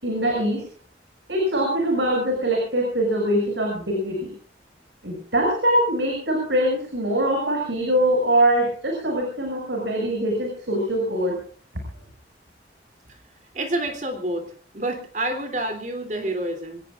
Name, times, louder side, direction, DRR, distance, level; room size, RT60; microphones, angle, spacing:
voice 1, 0.0-0.6 1.3-4.3 5.0-11.4, right 1 dB, 85° right, 1 dB, 6.4 m, -23 dB
voice 2, 13.5-14.5 14.7-16.8, right 1 dB, 45° right, 5 dB, 3.1 m, -28 dB
25.5 x 20.0 x 2.5 m, 0.44 s
head